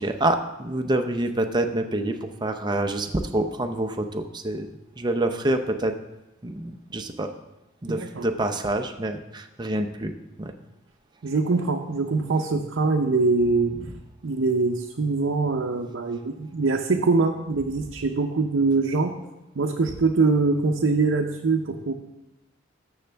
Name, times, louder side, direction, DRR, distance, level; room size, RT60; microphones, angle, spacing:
voice 1, 0.0-4.7 5.0-5.9 6.4-7.3 7.8-10.5, right 1 dB, 20° right, 6 dB, 0.6 m, -27 dB
voice 2, 7.9-8.3 11.2-13.7 14.2-19.2 19.5-21.9, right 3 dB, 70° right, 2 dB, 0.6 m, -23 dB
13.5 x 6.3 x 3.4 m, 0.95 s
head